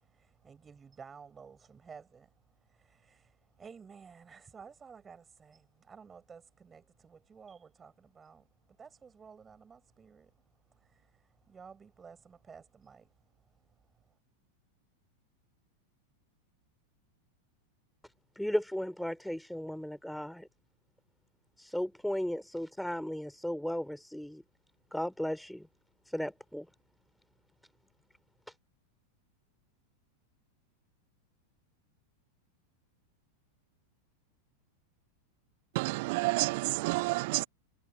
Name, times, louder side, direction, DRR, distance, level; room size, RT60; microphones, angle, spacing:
voice 1, 0.5-2.2 3.6-5.6 5.9-6.8 7.1-8.4 8.8-10.2 11.5-13.0, right 6 dB, 20° right, 7.4 m, -52 dB
voice 2, 18.4-20.5 21.6-24.4 24.9-25.7 26.1-26.7, equal, ahead, 4.5 m, -35 dB
voice 3, 35.7-37.4, right 25 dB, 50° right, 1.1 m, -29 dB
figure-of-eight pair, 90°, 0 cm